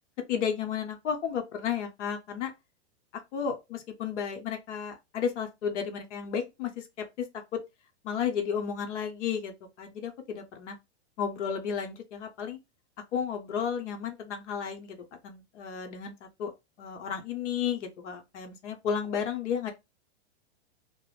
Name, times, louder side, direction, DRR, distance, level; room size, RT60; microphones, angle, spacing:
voice 1, 0.3-2.5 3.3-7.3 7.5-7.6 8.0-10.8 11.2-12.6 13.1-16.5 16.8-19.7, left 7 dB, 80° left, 0.8 m, -33 dB
2.4 x 2.0 x 3.0 m
supercardioid pair, 150°, 35 cm